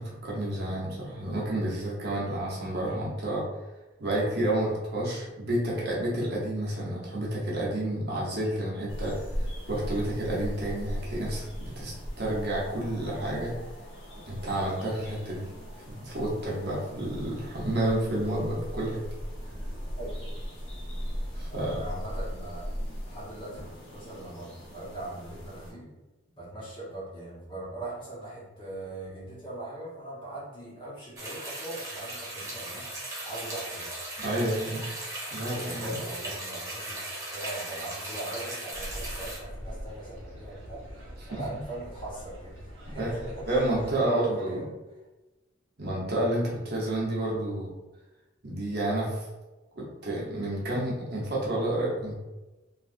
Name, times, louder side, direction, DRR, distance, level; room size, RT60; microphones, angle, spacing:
voice 1, 0.0-3.4 4.0-9.1 9.7-13.5 14.3-15.5 15.9-19.0 21.4-21.7 34.2-34.9 35.3-36.0 41.2-41.4 43.0-43.1 43.5-44.6 45.8-47.7 48.4-49.3 49.7-52.2, right 1 dB, 55° right, -5 dB, 0.9 m, -30 dB
sound 1, 8.9-25.7, equal, 90° left, 1.0 m, -38 dB
voice 2, 21.5-22.7 23.0-23.6 23.9-25.9 26.4-34.0 35.6-41.0 41.3-44.7, right 1 dB, 25° left, -7 dB, 1.1 m, -40 dB
sound 2, 31.2-39.4, right 1 dB, 15° right, 0.7 m, -38 dB
sound 3, 38.7-43.9, equal, 80° right, 1.0 m, -43 dB
3.3 x 2.5 x 2.5 m, 1.1 s
head